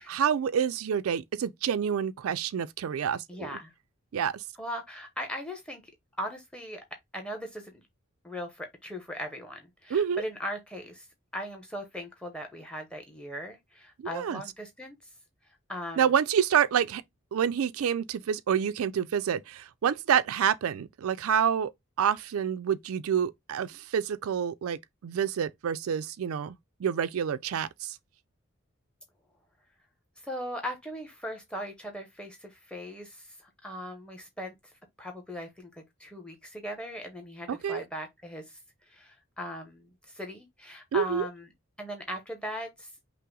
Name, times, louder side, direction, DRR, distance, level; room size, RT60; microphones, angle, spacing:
voice 1, 0.0-3.5 4.1-4.4 9.9-10.2 14.0-14.4 16.0-17.0 17.3-21.7 22.0-28.0 37.5-37.8 40.9-41.3, right 8 dB, 90° right, 0.4 m, -28 dB
voice 2, 3.3-3.7 4.6-5.8 6.2-6.8 7.1-7.8 8.2-11.1 11.3-15.0 15.7-16.1 30.2-34.7 35.0-38.6 38.9-41.5 41.8-42.9, equal, 5° left, 0.8 m, -39 dB
5.5 x 2.0 x 3.7 m
head